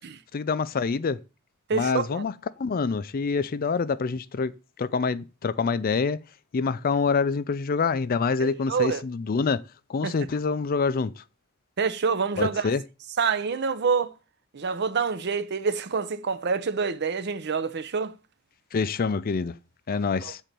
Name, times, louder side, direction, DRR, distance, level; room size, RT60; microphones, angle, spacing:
voice 1, 0.3-1.2 1.7-2.3 2.6-4.5 4.8-6.2 6.5-9.6 9.9-11.2 12.4-12.8 18.7-19.5 19.9-20.4, left 5 dB, 45° left, 0.4 m, -26 dB
voice 2, 1.7-2.2 8.4-9.0 10.0-10.1 11.8-12.7 13.2-14.1 14.5-18.1 20.2-20.3, right 5 dB, 55° right, 0.6 m, -27 dB
7.6 x 4.0 x 6.7 m
head